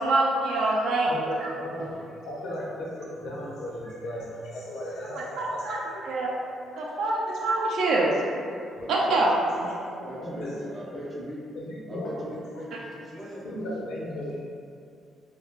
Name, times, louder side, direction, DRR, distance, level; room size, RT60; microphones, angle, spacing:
voice 1, 0.0-1.1 1.4-1.5 1.8-1.9 5.4-5.8 6.1-6.3 6.8-8.3 8.9-9.4, right 2 dB, 75° right, -3 dB, 0.3 m, -25 dB
voice 2, 1.0-2.0 2.2-6.3 6.7-6.8 7.3-7.5 9.5-11.1 11.5-12.2 13.4-14.4, left 1 dB, 85° left, -5 dB, 0.6 m, -36 dB
voice 3, 8.8-9.5 9.8-11.4 11.9-13.6, equal, 30° right, -4 dB, 0.6 m, -39 dB
2.3 x 2.2 x 3.0 m, 2.4 s
cardioid pair, 90°, 0 cm